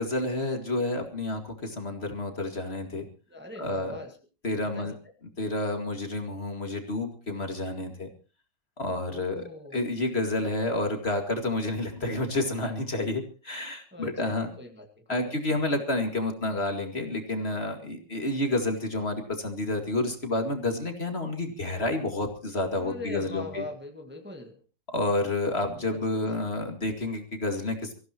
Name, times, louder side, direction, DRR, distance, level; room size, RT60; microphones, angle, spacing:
voice 1, 0.0-3.0 3.6-4.0 4.4-4.9 5.4-8.1 8.8-9.4 9.7-14.5 15.1-23.6 24.9-27.9, left 2 dB, 35° left, 4 dB, 2.4 m, -29 dB
voice 2, 3.3-4.2 4.5-4.9 9.1-9.8 13.9-15.6 22.8-24.6 25.7-26.0, left 2 dB, 5° right, 3 dB, 1.6 m, -42 dB
25.0 x 15.0 x 3.0 m, 0.35 s
omnidirectional pair, 1.9 m